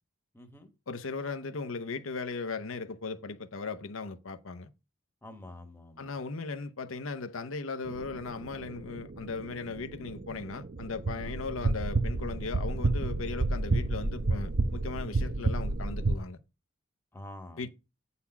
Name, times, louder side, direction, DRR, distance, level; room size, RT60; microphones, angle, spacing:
voice 1, 0.3-0.7 5.2-6.2 11.2-11.4 17.1-17.7, left 1 dB, 10° left, 1.2 m, -47 dB
voice 2, 0.9-4.7 6.0-16.4 17.6-17.7, left 4 dB, 85° left, 0.8 m, -37 dB
sound 1, 7.9-16.2, right 2 dB, 50° right, 0.7 m, -31 dB
8.5 x 4.1 x 5.7 m
head